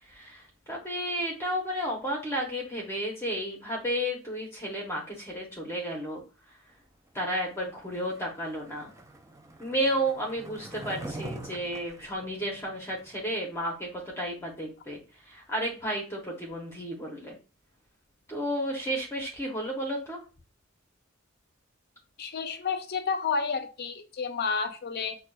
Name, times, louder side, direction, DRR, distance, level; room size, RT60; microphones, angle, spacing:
voice 1, 0.1-6.2 7.1-8.9 9.6-15.0 15.2-17.4 18.3-20.2, equal, 15° left, -1 dB, 0.8 m, -32 dB
Skateboard, 7.8-13.2, right 2 dB, 15° right, 0.4 m, -44 dB
voice 2, 22.2-25.2, left 5 dB, 50° left, 8 dB, 0.5 m, -30 dB
5.9 x 2.2 x 2.2 m, 0.33 s
head